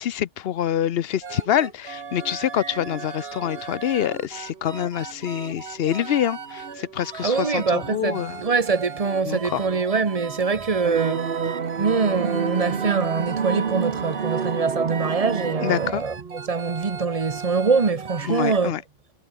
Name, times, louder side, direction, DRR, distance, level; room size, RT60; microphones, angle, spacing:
voice 1, 0.0-8.4 9.3-9.6 15.6-16.0 18.3-18.8, left 10 dB, 75° left, 0.9 m, -26 dB
sound 1, 1.2-18.6, right 6 dB, 80° right, 1.6 m, -37 dB
voice 2, 7.2-11.3 11.8-18.7, right 4 dB, 40° right, 1.1 m, -24 dB
sound 2, 10.8-15.9, right 6 dB, 60° right, 1.3 m, -27 dB
omnidirectional pair, 1.0 m